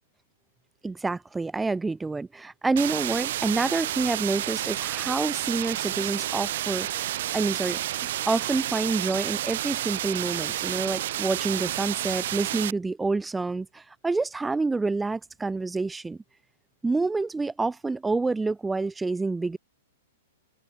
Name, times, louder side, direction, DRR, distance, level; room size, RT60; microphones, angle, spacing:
voice 1, 0.8-6.9 7.3-16.2 16.8-19.6, right 3 dB, 5° right, 1.0 m, -28 dB
sound 1, 2.8-12.7, right 13 dB, 55° right, 4.1 m, -30 dB
hypercardioid pair, 160°, 0 cm